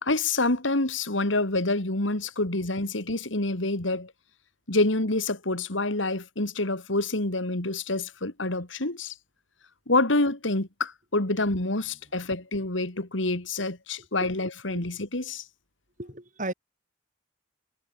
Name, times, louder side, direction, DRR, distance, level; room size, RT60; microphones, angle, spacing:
voice 1, 0.0-4.1 4.7-9.1 9.9-15.4, left 2 dB, 80° left, 3.0 m, -27 dB
voice 2, 16.0-16.5, right 2 dB, 40° right, 6.0 m, -34 dB
head